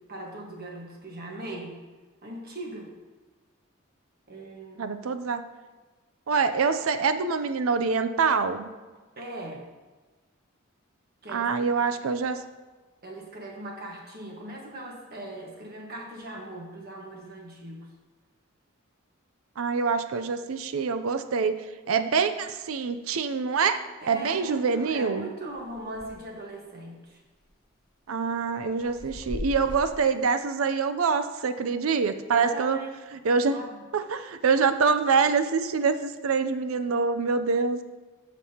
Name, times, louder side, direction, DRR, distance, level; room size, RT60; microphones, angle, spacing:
voice 1, 0.1-1.8 2.2-2.9 4.3-4.9 9.2-9.6 11.2-11.7 13.0-17.9 24.0-27.2 32.3-32.9 33.5-33.8, right 1 dB, 45° right, 0 dB, 1.4 m, -39 dB
voice 2, 4.8-5.5 6.3-8.7 11.3-12.4 19.6-25.3 28.1-32.8 33.2-33.6 33.9-37.8, right 5 dB, 85° right, 10 dB, 0.5 m, -25 dB
sound 1, 25.6-26.3 26.7-26.8 27.4-27.8 28.4-30.0, left 1 dB, 20° left, 0.8 m, -38 dB
14.5 x 5.3 x 2.9 m, 1.3 s
head